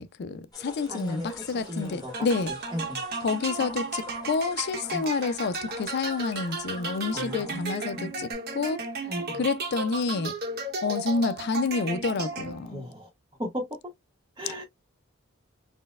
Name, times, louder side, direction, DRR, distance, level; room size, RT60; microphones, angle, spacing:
voice 1, 0.0-2.5 3.2-8.8 9.3-10.3 10.8-12.8, left 4 dB, 55° left, 0.4 m, -29 dB
sound 1, 0.5-8.3, left 2 dB, 20° left, 1.3 m, -47 dB
voice 2, 0.9-2.1 2.5-3.0 4.9-5.1 7.1-7.6 7.9-8.2 9.1-9.4 12.6-13.1 13.4-13.8 14.4-14.6, equal, 20° right, 0.8 m, -36 dB
sound 2, 2.1-12.8, right 3 dB, 50° right, 0.9 m, -34 dB
4.1 x 2.1 x 2.3 m
head